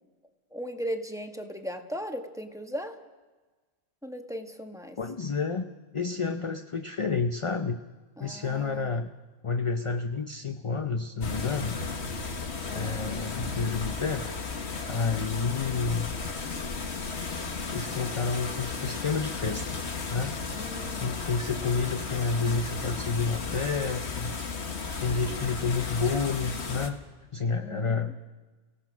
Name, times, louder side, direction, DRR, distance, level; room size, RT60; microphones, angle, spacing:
voice 1, 0.5-3.0 4.0-5.0 8.2-8.9 12.6-13.0 20.5-21.2 27.6-28.1, equal, 5° right, 4 dB, 1.3 m, -37 dB
voice 2, 5.0-7.8 8.2-9.1 9.4-11.8 12.7-14.3 14.9-16.1 17.7-19.8 20.1-20.4 21.0-24.4 25.0-27.0 27.3-28.1, left 4 dB, 35° left, 7 dB, 0.6 m, -30 dB
sound 1, 11.2-26.9, left 4 dB, 60° left, 1.8 m, -34 dB
30.0 x 17.0 x 6.0 m, 1.3 s
omnidirectional pair, 1.3 m